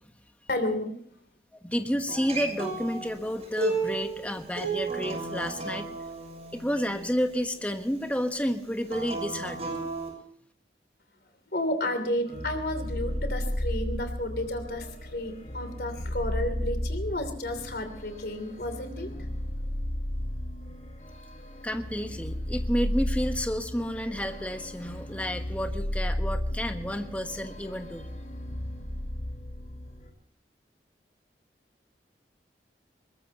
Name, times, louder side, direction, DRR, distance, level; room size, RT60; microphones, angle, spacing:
voice 1, 0.5-0.9 11.5-19.1, left 1 dB, 65° left, 8 dB, 3.1 m, -32 dB
voice 2, 1.6-5.9 6.5-9.9 21.6-28.1, equal, 10° left, 6 dB, 1.3 m, -31 dB
Acoustic guitar, 2.1-7.3 8.8-10.1, right 3 dB, 35° right, 6.6 m, -33 dB
sound 1, 12.3-30.1, left 1 dB, 45° left, 4.0 m, -34 dB
22.0 x 20.0 x 3.0 m, 0.65 s
head